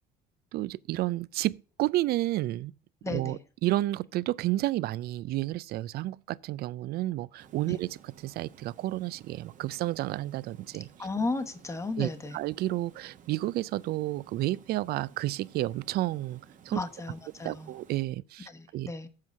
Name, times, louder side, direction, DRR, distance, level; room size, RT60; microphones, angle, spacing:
voice 1, 0.5-2.7 3.1-10.9 12.0-16.4 16.7-16.8 17.4-18.9, right 16 dB, 70° right, 0.4 m, -31 dB
voice 2, 3.0-3.4 7.7-7.8 11.0-12.4 16.7-17.7 18.5-19.1, left 3 dB, 15° left, 1.0 m, -34 dB
Water, 7.4-18.0, right 7 dB, 50° right, 1.1 m, -56 dB
7.6 x 4.6 x 7.1 m
cardioid pair, 110°, 17 cm